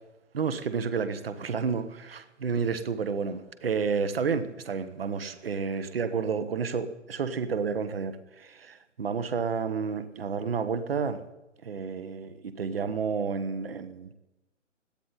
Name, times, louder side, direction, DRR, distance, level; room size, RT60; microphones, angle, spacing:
voice 1, 0.3-11.2 11.6-14.1, right 5 dB, 50° right, 12 dB, 1.5 m, -30 dB
20.5 x 15.0 x 4.2 m, 1.0 s
figure-of-eight pair, 145°, 38 cm